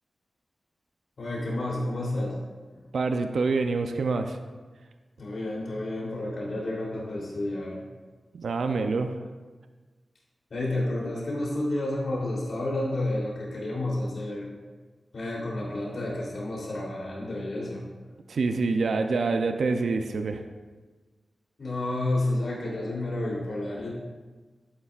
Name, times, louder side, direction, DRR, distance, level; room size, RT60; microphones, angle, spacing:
voice 1, 1.2-2.4 5.2-7.8 10.5-14.5 15.1-17.8 21.6-23.9, left 1 dB, 70° left, -4 dB, 3.3 m, -30 dB
voice 2, 2.9-4.4 8.3-9.2 18.3-20.4, right 4 dB, 85° right, 7 dB, 0.6 m, -26 dB
12.0 x 9.6 x 2.5 m, 1.3 s
cardioid pair, 45°, 0 cm